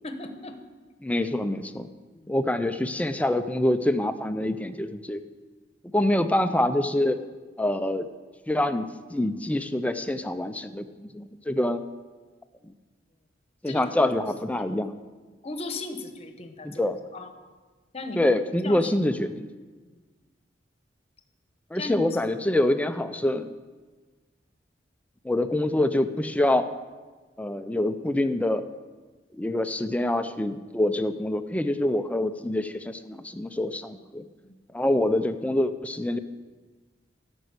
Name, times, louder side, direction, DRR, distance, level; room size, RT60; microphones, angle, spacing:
voice 1, 0.0-0.6 2.1-2.3 13.7-14.3 14.6-14.8 15.4-16.8 17.1-17.3 17.9-18.3 18.6-18.9 19.8-20.0 21.7-22.1 34.4-34.6, left 2 dB, 35° left, 7 dB, 1.0 m, -37 dB
voice 2, 1.0-1.9 2.3-5.2 5.9-7.2 7.6-8.1 8.5-11.8 13.6-14.9 16.6-17.0 18.2-19.5 21.7-23.5 25.2-26.7 27.4-28.6 29.3-34.3 34.7-36.2, left 1 dB, 10° left, 10 dB, 0.4 m, -26 dB
12.5 x 6.3 x 8.1 m, 1.3 s
head